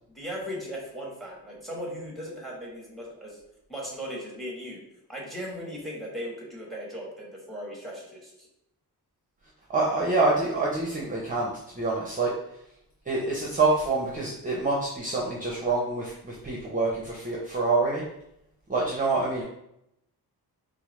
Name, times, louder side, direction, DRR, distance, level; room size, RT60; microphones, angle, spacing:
voice 1, 0.1-3.4 3.7-4.8 5.1-8.5, equal, ahead, -2 dB, 1.2 m, -37 dB
voice 2, 9.7-12.3 13.1-18.0 18.7-19.4, right 3 dB, 20° right, -3 dB, 0.6 m, -26 dB
4.4 x 2.1 x 3.1 m, 0.80 s
cardioid pair, 90°, 38 cm